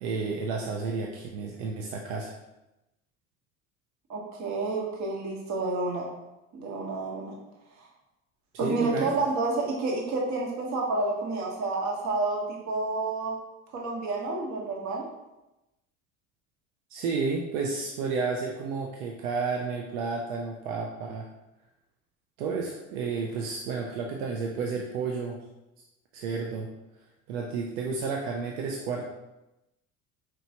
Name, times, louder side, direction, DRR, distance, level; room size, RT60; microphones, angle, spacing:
voice 1, 0.0-2.4 8.5-9.1 16.9-21.3 22.4-25.4 26.1-26.7 27.0-29.0, right 4 dB, 75° right, 0 dB, 0.6 m, -31 dB
voice 2, 4.1-6.1 6.5-7.3 8.6-13.3 13.7-15.0, right 3 dB, 45° right, -1 dB, 1.0 m, -29 dB
4.7 x 3.0 x 2.8 m, 0.96 s
hypercardioid pair, 75°, 40 cm